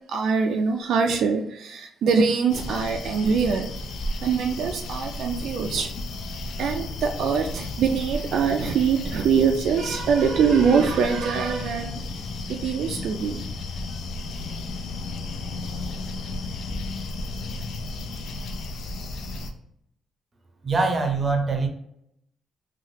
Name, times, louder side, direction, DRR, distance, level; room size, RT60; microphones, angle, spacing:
voice 1, 0.1-3.7 4.2-5.9 6.6-12.0 12.5-13.4, right 6 dB, 70° right, 3 dB, 0.3 m, -23 dB
sound 1, 2.5-19.5, left 2 dB, 75° left, 0.4 m, -33 dB
voice 2, 20.6-21.7, right 3 dB, 35° right, 4 dB, 0.6 m, -23 dB
2.9 x 2.4 x 2.7 m, 0.74 s
cardioid pair, 90°, 0 cm